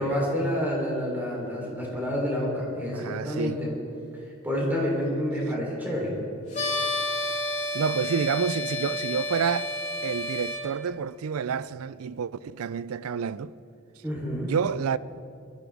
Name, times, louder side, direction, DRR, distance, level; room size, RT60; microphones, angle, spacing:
voice 1, 0.0-3.8 4.2-6.1 14.0-14.5, equal, 10° right, 3.5 m, -28 dB
voice 2, 2.9-3.6 7.7-9.7 10.0-13.5 14.4-15.0, right 6 dB, 85° right, 0.4 m, -29 dB
sound 1, 6.5-10.6, left 2 dB, 35° left, 3.5 m, -30 dB
22.5 x 13.5 x 3.5 m
head